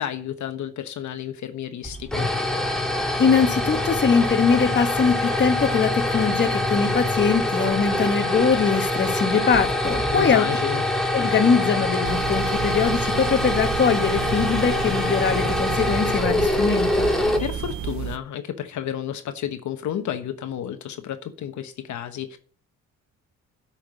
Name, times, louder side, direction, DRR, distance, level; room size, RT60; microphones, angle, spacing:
voice 1, 0.0-2.3 10.1-10.8 17.4-22.4, left 10 dB, 70° left, 8 dB, 1.1 m, -31 dB
sound 1, 1.8-18.0, left 1 dB, ahead, 2.5 m, -24 dB
voice 2, 3.2-10.5 11.1-17.1, left 6 dB, 35° left, 7 dB, 1.3 m, -22 dB
sound 2, 12.0-18.2, right 10 dB, 70° right, 0.8 m, -32 dB
8.6 x 6.0 x 8.1 m, 0.44 s
cardioid pair, 90°, 30 cm